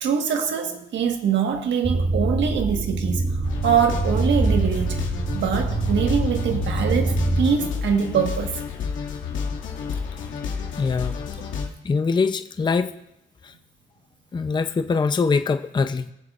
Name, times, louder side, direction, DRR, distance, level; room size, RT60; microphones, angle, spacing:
voice 1, 0.0-3.3 3.6-5.0 5.3-8.6, right 7 dB, 65° right, 4 dB, 1.5 m, -23 dB
sound 1, 1.8-7.5, right 3 dB, 20° right, 1.0 m, -24 dB
sound 2, 3.4-11.7, left 6 dB, 80° left, 2.2 m, -30 dB
voice 2, 10.8-11.2 11.8-12.9 13.4-13.5 14.3-16.1, left 4 dB, 25° left, 10 dB, 0.6 m, -23 dB
22.0 x 7.3 x 2.5 m, 0.82 s
cardioid pair, 90°, 20 cm